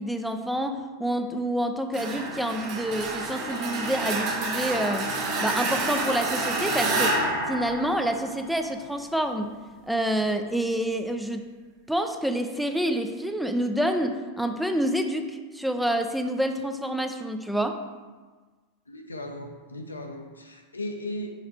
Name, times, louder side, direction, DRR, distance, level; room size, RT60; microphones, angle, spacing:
voice 1, 0.0-5.1 5.4-7.2 7.5-9.5 9.9-11.5 11.9-17.8, right 1 dB, ahead, 6 dB, 0.5 m, -28 dB
sound 1, 1.9-8.6, right 2 dB, 40° right, 1.2 m, -28 dB
voice 2, 18.9-21.3, left 1 dB, 80° left, 3 dB, 0.6 m, -36 dB
6.4 x 4.4 x 4.9 m, 1.4 s
figure-of-eight pair, 90°, 0 cm